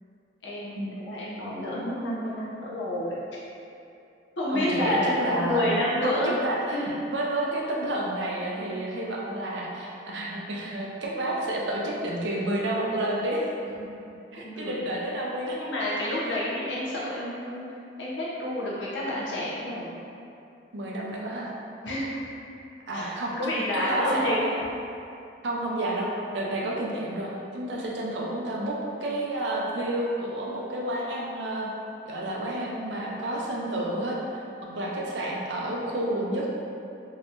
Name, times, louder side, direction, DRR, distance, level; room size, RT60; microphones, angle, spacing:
voice 1, 0.4-3.2 4.4-5.1 5.4-6.4 6.7-6.8 13.8-13.9 14.3-15.0 15.6-17.6 18.0-19.9 21.8-22.2 22.9-23.1 23.4-24.4 27.7-28.0 34.6-34.9, left 1 dB, 80° left, -6 dB, 0.8 m, -29 dB
voice 2, 4.5-5.7 6.0-13.5 14.3-15.7 20.7-21.5 22.9-24.4 25.4-31.7 32.0-34.4 34.7-36.5, right 1 dB, 75° right, -3 dB, 0.6 m, -30 dB
4.0 x 2.8 x 2.5 m, 2.7 s
head